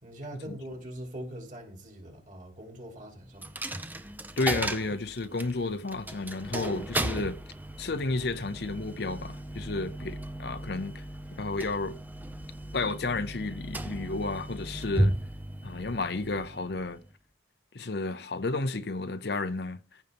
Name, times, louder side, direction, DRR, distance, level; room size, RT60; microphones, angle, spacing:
voice 1, 0.0-3.6, right 1 dB, 40° right, 3.1 m, -42 dB
Coin (dropping), 3.4-17.1, right 1 dB, 10° right, 0.6 m, -35 dB
voice 2, 4.4-7.4 7.8-11.0 11.3-12.0 12.7-15.1 15.6-17.0 17.7-20.0, left 3 dB, 55° left, 0.7 m, -32 dB
15.0 x 5.5 x 3.6 m
head